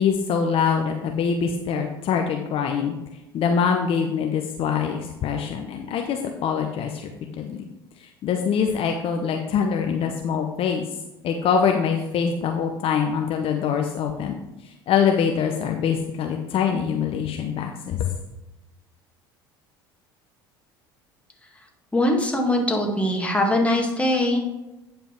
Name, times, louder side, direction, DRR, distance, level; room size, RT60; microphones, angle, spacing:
voice 1, 0.0-2.9 3.3-7.6 8.0-10.9 11.2-14.4 14.6-18.1, left 7 dB, 45° left, 4 dB, 0.8 m, -24 dB
voice 2, 21.9-24.5, left 1 dB, 10° left, 1 dB, 1.9 m, -22 dB
9.0 x 5.3 x 4.5 m, 0.97 s
hypercardioid pair, 70°, 13 cm